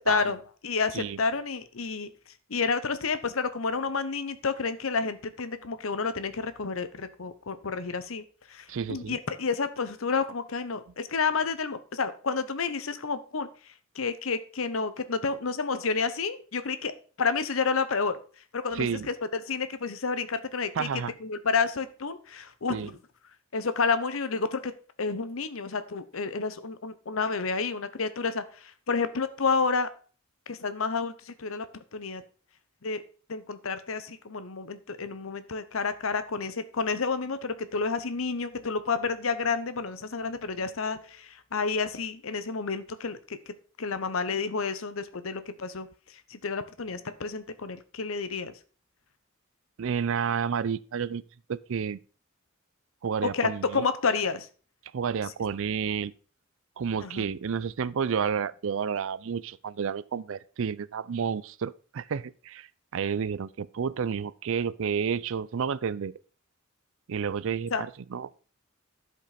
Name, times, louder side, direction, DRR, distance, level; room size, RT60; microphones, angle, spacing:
voice 1, 0.1-0.4 0.6-2.1 2.5-13.5 14.0-16.9 17.2-18.2 18.5-20.9 21.2-22.9 23.5-24.7 25.0-29.9 30.5-31.7 31.9-32.2 32.8-33.0 33.3-43.4 43.8-45.9 46.3-48.5 53.3-54.5 57.0-57.3 67.7-67.8, left 4 dB, 75° left, 0.9 m, -30 dB
voice 2, 8.7-9.2 18.7-19.1 20.8-21.1 22.7-22.9 49.8-51.2 51.5-52.0 53.0-53.8 54.9-56.1 56.8-62.7 62.9-66.1 67.1-68.4, right 6 dB, 70° right, 0.4 m, -30 dB
12.0 x 5.3 x 4.2 m
head